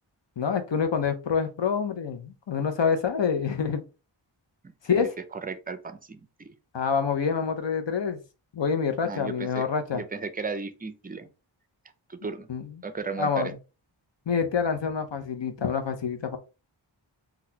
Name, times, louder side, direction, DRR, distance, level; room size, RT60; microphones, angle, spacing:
voice 1, 0.4-3.8 4.9-5.1 6.7-8.2 8.5-10.0 12.5-12.7 13.2-13.5 14.3-16.4, left 6 dB, 65° left, 0.6 m, -27 dB
voice 2, 4.9-6.5 9.0-11.3 12.1-12.5 12.8-13.5, right 4 dB, 20° right, 0.4 m, -35 dB
3.9 x 2.3 x 2.7 m
wide cardioid pair, 45°, 47 cm